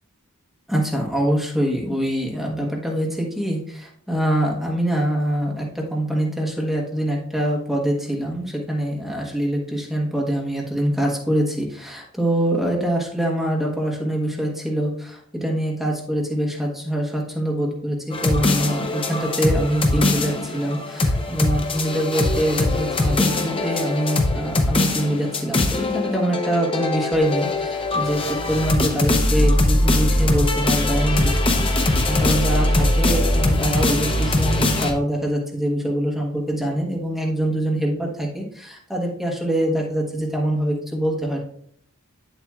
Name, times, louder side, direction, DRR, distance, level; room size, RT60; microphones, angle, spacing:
voice 1, 0.7-41.4, right 1 dB, ahead, -2 dB, 1.3 m, -24 dB
sound 1, 18.1-34.9, left 2 dB, 25° left, 0.7 m, -21 dB
7.9 x 7.3 x 2.4 m, 0.65 s
head